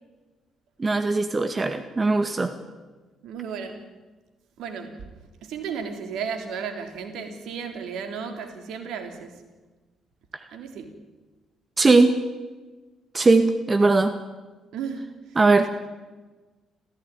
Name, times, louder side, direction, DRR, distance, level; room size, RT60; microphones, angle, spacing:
voice 1, 0.8-2.5 11.8-12.1 13.1-14.2 15.4-15.7, right 3 dB, 30° right, 1.9 m, -19 dB
voice 2, 3.2-3.8 4.6-5.0 5.4-9.4 10.5-10.9 14.7-15.1, right 6 dB, 65° right, 3.4 m, -34 dB
29.0 x 16.0 x 9.2 m
hypercardioid pair, 45°, 0 cm